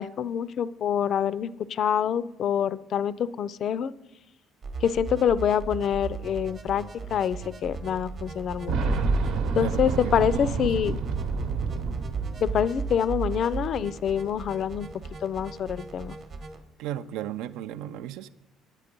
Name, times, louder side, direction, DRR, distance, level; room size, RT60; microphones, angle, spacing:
voice 1, 0.0-3.9 4.8-6.9 7.1-9.0 9.5-11.0 12.4-14.9 15.2-16.2, left 8 dB, 40° left, 17 dB, 0.3 m, -26 dB
sound 1, 4.6-16.6, right 4 dB, 30° right, 0.9 m, -37 dB
Boom, 8.7-13.4 13.7-13.8 14.9-15.0, right 4 dB, 65° right, 1.0 m, -29 dB
voice 2, 9.6-11.0 16.8-18.3, right 11 dB, 80° right, 15 dB, 0.5 m, -35 dB
9.9 x 8.4 x 5.2 m, 0.95 s
cardioid pair, 175°, 0 cm